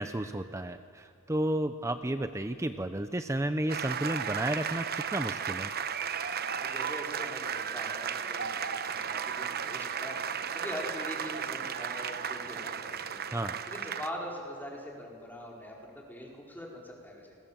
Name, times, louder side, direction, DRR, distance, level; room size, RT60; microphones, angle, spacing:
voice 1, 0.0-4.9 5.1-5.7 13.3-13.6, right 1 dB, 15° right, 9 dB, 0.7 m, -32 dB
sound 1, 3.7-14.1, right 7 dB, 50° right, 1.0 m, -34 dB
voice 2, 6.6-13.2 13.7-17.4, equal, 10° left, -2 dB, 4.9 m, -42 dB
29.5 x 21.5 x 7.6 m, 2.2 s
head